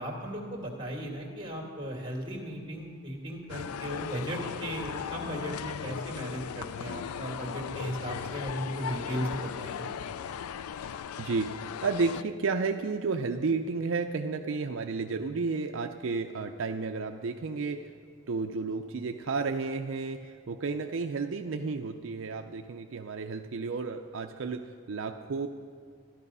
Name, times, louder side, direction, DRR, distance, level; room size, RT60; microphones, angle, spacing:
voice 1, 0.0-9.8, equal, 20° right, 1 dB, 2.1 m, -36 dB
sound 1, 3.5-12.2, left 7 dB, 90° left, 0.4 m, -37 dB
voice 2, 11.2-17.9 18.3-25.5, right 4 dB, 65° right, 5 dB, 0.5 m, -32 dB
13.5 x 11.5 x 5.4 m, 2.1 s
head